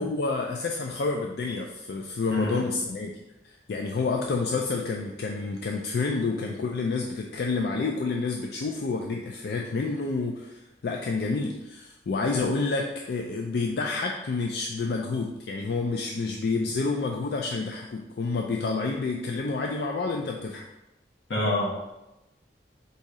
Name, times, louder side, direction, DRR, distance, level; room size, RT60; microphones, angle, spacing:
voice 1, 0.0-20.6, left 3 dB, 60° left, 1 dB, 0.4 m, -29 dB
voice 2, 2.3-2.7 21.3-21.7, left 1 dB, 85° left, -3 dB, 1.3 m, -27 dB
4.1 x 2.7 x 4.8 m, 0.95 s
head